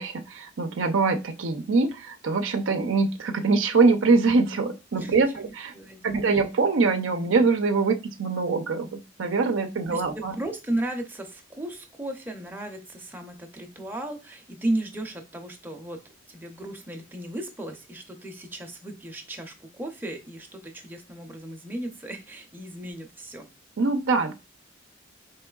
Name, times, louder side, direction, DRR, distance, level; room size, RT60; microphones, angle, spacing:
voice 1, 0.0-5.7 6.0-10.4 23.8-24.3, right 4 dB, 85° right, 6 dB, 0.5 m, -23 dB
voice 2, 5.0-6.4 9.9-16.0 16.3-23.5, right 1 dB, 10° right, 2 dB, 0.6 m, -35 dB
4.4 x 3.2 x 2.3 m, 0.28 s
head